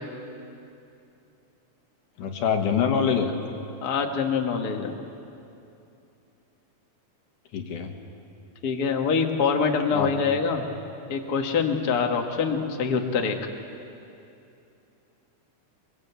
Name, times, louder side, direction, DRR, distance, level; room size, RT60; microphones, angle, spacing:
voice 1, 2.2-3.3 7.5-7.9 9.9-10.1, left 7 dB, 80° left, 4 dB, 3.0 m, -24 dB
voice 2, 3.8-4.9 8.6-10.6 11.1-13.3, left 5 dB, 40° left, 2 dB, 1.6 m, -25 dB
23.0 x 22.5 x 8.2 m, 2.7 s
omnidirectional pair, 3.6 m